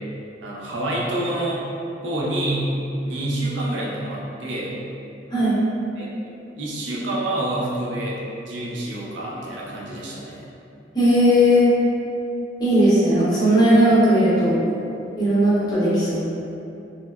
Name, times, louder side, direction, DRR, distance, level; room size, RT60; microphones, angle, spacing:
voice 1, 0.4-1.7 2.0-2.7 3.0-4.8 6.0-6.1 6.6-10.5, right 1 dB, 75° right, -4 dB, 0.5 m, -27 dB
voice 2, 10.9-11.7 12.6-14.6 15.2-16.2, equal, 20° left, -11 dB, 0.7 m, -17 dB
3.0 x 2.0 x 2.2 m, 2.7 s
head